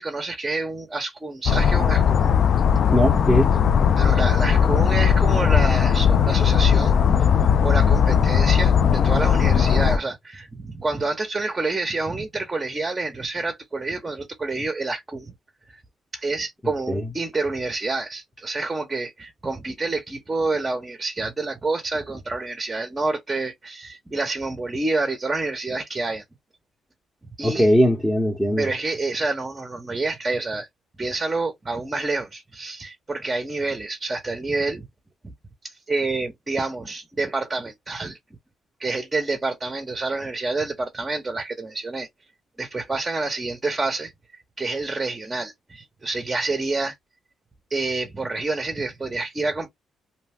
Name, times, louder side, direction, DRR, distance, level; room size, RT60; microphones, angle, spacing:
voice 1, 0.0-2.2 4.0-6.9 7.3-15.3 15.7-15.8 16.1-26.2 27.4-27.7 28.6-30.7 31.0-34.9 35.2-35.3 35.6-38.2 38.8-42.1 42.6-44.1 44.6-46.9 47.7-49.7, right 3 dB, 20° right, 0.8 m, -28 dB
sound 1, 1.5-10.0, left 7 dB, 60° left, 0.4 m, -18 dB
voice 2, 2.9-3.6 16.9-17.1 27.4-28.7, equal, 5° left, 0.9 m, -20 dB
2.7 x 2.2 x 3.4 m
cardioid pair, 90°, 0 cm